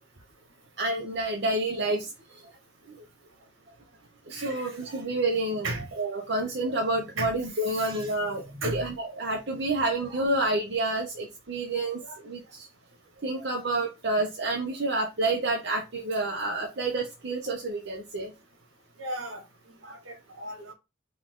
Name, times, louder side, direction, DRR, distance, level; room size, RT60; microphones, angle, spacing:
voice 1, 0.8-2.5 2.9-3.0 4.3-5.7 6.0-12.7 13.2-18.3 19.8-20.0, right 2 dB, 55° right, 0.9 m, -29 dB
voice 2, 4.3-4.7 5.6-5.9 7.2-7.3 7.7-8.1 8.6-8.8 19.0-19.4 20.1-20.7, right 2 dB, 80° right, 1.4 m, -35 dB
5.6 x 2.5 x 3.7 m
head